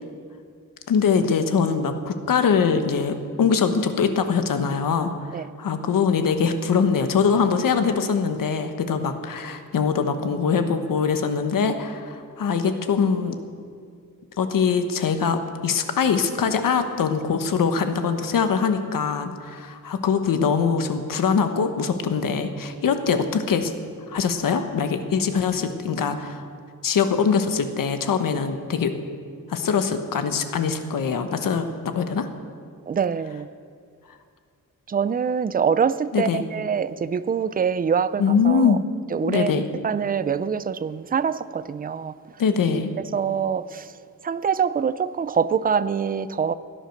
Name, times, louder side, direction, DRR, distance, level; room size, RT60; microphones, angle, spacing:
voice 1, 0.9-13.4 14.4-23.7 24.1-26.4 26.8-28.9 29.5-32.3 36.1-36.4 38.2-38.8 39.2-39.7 42.4-42.9, left 6 dB, 70° left, 8 dB, 1.2 m, -23 dB
voice 2, 32.9-33.5 34.9-38.8 39.1-42.1 43.1-43.9 44.2-46.5, right 7 dB, 25° right, 15 dB, 0.3 m, -24 dB
16.5 x 10.0 x 6.6 m, 2.2 s
wide cardioid pair, 175°, 34 cm